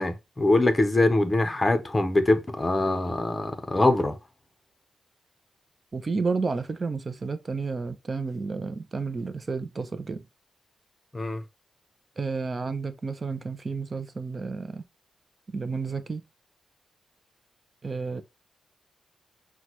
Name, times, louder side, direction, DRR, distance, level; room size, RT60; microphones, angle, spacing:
voice 1, 0.0-4.1 11.1-11.4, left 2 dB, 20° left, 0.7 m, -23 dB
voice 2, 5.9-10.3 12.2-14.8 15.5-16.2 17.8-18.2, right 4 dB, 30° right, 0.6 m, -31 dB
6.1 x 2.3 x 3.0 m
wide cardioid pair, 145°, 0 cm